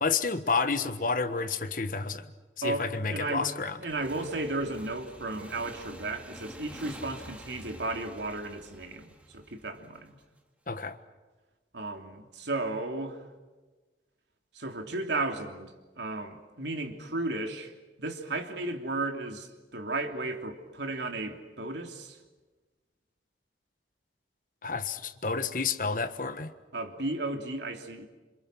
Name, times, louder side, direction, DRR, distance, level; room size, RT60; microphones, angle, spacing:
voice 1, 0.0-2.3 2.6-3.8 10.7-11.0 24.6-26.5, left 4 dB, 50° left, 1.4 m, -30 dB
voice 2, 2.6-3.5 3.8-10.2 11.7-13.2 14.5-17.7 18.0-22.2 26.7-28.1, right 2 dB, 80° right, 3.0 m, -34 dB
Motorcycle / Engine, 3.9-10.2, right 1 dB, 10° right, 2.4 m, -48 dB
28.0 x 26.5 x 6.3 m
head